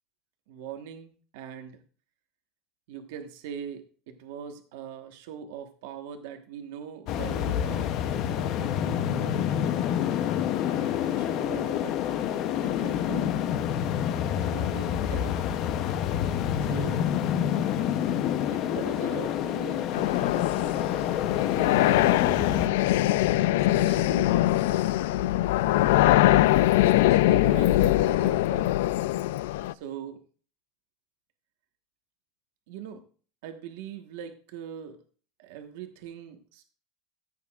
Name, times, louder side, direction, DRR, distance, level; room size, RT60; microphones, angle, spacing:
voice 1, 0.5-1.8 2.9-8.0 8.6-9.6 10.5-12.0 12.5-13.4 14.3-15.5 16.6-17.0 18.5-20.1 21.4-22.5 23.5-24.4 25.3-25.5 25.9-26.2 26.8-28.7 29.7-30.2 32.7-33.0 33.4-35.0 35.4-36.7, right 8 dB, 75° right, 5 dB, 1.2 m, -41 dB
sound 1, 7.1-22.7, left 10 dB, 45° left, 0.7 m, -28 dB
sound 2, 19.9-29.7, left 15 dB, 85° left, 0.3 m, -22 dB
14.5 x 8.4 x 2.4 m, 0.40 s
cardioid pair, 170°, 0 cm